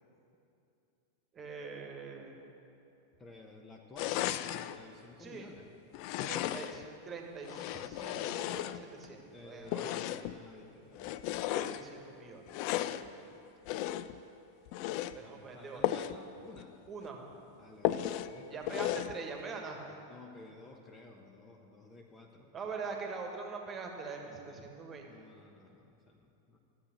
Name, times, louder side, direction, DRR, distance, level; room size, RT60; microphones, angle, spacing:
voice 1, 1.3-2.4 5.2-5.5 6.2-9.9 11.5-12.9 15.1-15.8 16.9-17.2 18.5-20.0 22.5-25.1, right 4 dB, 25° right, 2 dB, 1.5 m, -43 dB
voice 2, 3.2-5.7 9.3-11.5 12.9-13.5 15.1-16.8 17.6-19.1 20.1-22.5 24.2-24.7 25.0-26.6, left 3 dB, 20° left, 2 dB, 0.9 m, -54 dB
sound 1, 4.0-4.8 5.9-6.9 7.4-9.1 9.7-10.4 11.0-11.8 12.5-13.1 13.7-14.2 14.7-15.2 15.8-16.2 16.6-16.7 17.0-17.1 17.8-18.3 18.7-19.2, left 13 dB, 45° left, 0.3 m, -35 dB
13.0 x 7.4 x 6.1 m, 2.7 s
figure-of-eight pair, 90°, 0 cm